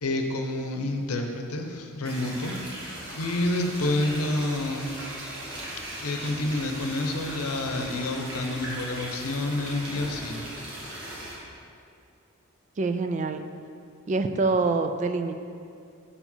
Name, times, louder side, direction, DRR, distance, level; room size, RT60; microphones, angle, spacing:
voice 1, 0.0-2.6 3.1-5.0 6.0-10.4, left 2 dB, 85° left, 4 dB, 0.8 m, -28 dB
sound 1, 2.1-11.3, right 1 dB, 55° right, 1.8 m, -38 dB
voice 2, 12.8-13.5 14.1-15.3, right 3 dB, 35° right, 8 dB, 0.3 m, -25 dB
6.7 x 4.9 x 5.4 m, 2.4 s
head